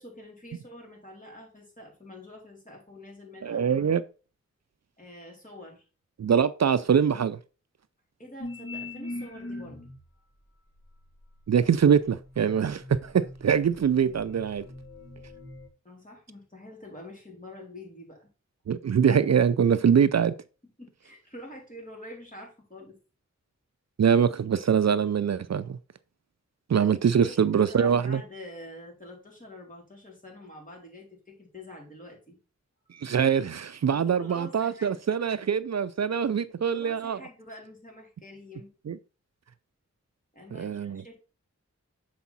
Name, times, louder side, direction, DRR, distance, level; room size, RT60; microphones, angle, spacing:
voice 1, 0.0-3.9 5.0-5.8 8.2-9.8 15.8-18.3 20.8-23.0 27.2-32.4 33.9-35.0 36.6-38.7 40.3-41.2, left 1 dB, 25° left, 3.6 m, -46 dB
voice 2, 3.4-4.0 6.2-7.4 11.5-14.6 18.7-20.3 24.0-25.8 26.7-28.2 33.0-37.2 38.9-39.0 40.5-41.0, right 7 dB, 60° right, 0.4 m, -23 dB
sound 1, 8.4-10.1 10.8-15.7, left 2 dB, 45° left, 1.6 m, -42 dB
7.0 x 4.7 x 4.1 m
wide cardioid pair, 40°, 29 cm